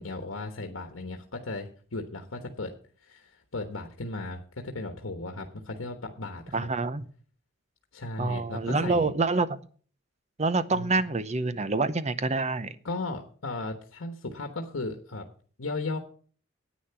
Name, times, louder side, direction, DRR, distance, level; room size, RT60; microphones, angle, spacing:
voice 1, 0.0-2.7 3.0-6.7 7.9-9.1 10.7-11.0 12.8-15.2 15.6-16.0, left 2 dB, 90° left, 5 dB, 1.2 m, -36 dB
voice 2, 6.5-7.1 8.2-9.6 10.4-12.8, right 3 dB, 35° right, 14 dB, 0.7 m, -27 dB
10.5 x 9.3 x 5.7 m, 0.43 s
head